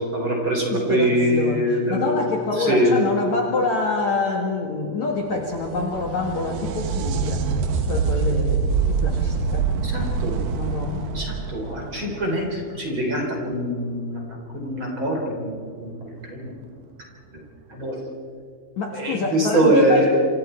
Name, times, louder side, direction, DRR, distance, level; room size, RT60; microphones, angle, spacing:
voice 1, 0.0-2.2 2.6-3.0 9.8-10.4 11.1-16.0 16.2-16.6 17.7-18.0 18.9-20.1, right 1 dB, 30° right, 0 dB, 4.0 m, -23 dB
voice 2, 0.7-1.6 1.9-7.5 7.8-9.7 10.5-11.2 18.8-20.1, left 3 dB, 55° left, 1 dB, 2.4 m, -26 dB
sound 1, 5.3-12.8 16.2-16.3 17.4-17.5, right 5 dB, 65° right, 2.6 m, -25 dB
27.0 x 26.5 x 4.6 m, 2.3 s
omnidirectional pair, 5.1 m